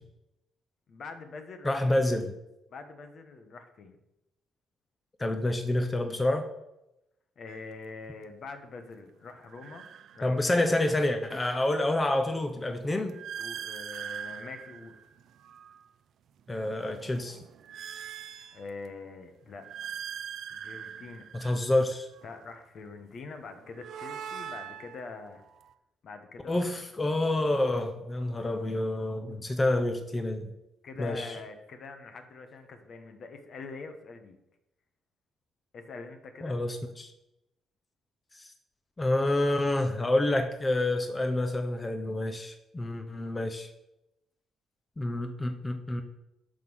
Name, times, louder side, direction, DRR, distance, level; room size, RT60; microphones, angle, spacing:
voice 1, 0.9-2.0 2.7-4.0 7.4-9.8 10.1-10.9 13.4-14.9 18.5-19.9 20.5-21.2 22.2-25.4 26.0-26.7 30.8-34.4 35.7-36.6, left 4 dB, 55° left, 6 dB, 1.3 m, -44 dB
voice 2, 1.6-2.3 5.2-6.5 10.2-13.2 16.5-17.4 21.3-22.1 26.5-30.5 31.0-31.4 36.4-37.1 38.3-38.5 39.0-43.7 45.0-46.0, left 1 dB, 20° left, 6 dB, 0.9 m, -28 dB
sound 1, 7.5-7.7 9.4-10.6 11.0-15.9 16.4-19.0 19.5-22.4 23.4-25.7, right 8 dB, 70° right, 0.5 m, -43 dB
11.5 x 3.8 x 6.3 m, 0.89 s
cardioid pair, 90°, 0 cm